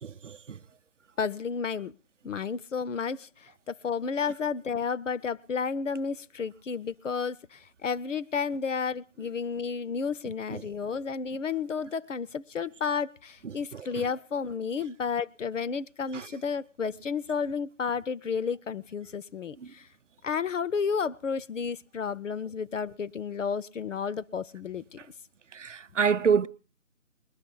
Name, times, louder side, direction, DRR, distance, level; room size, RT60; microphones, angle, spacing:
voice 1, 0.0-0.6 10.5-10.6 13.4-13.6 16.1-16.3 25.5-26.5, right 6 dB, 65° right, 0.6 m, -27 dB
voice 2, 1.2-1.9 2.2-19.9 20.2-25.0, left 6 dB, 65° left, 0.6 m, -32 dB
20.5 x 12.5 x 3.8 m
figure-of-eight pair, 175°, 40 cm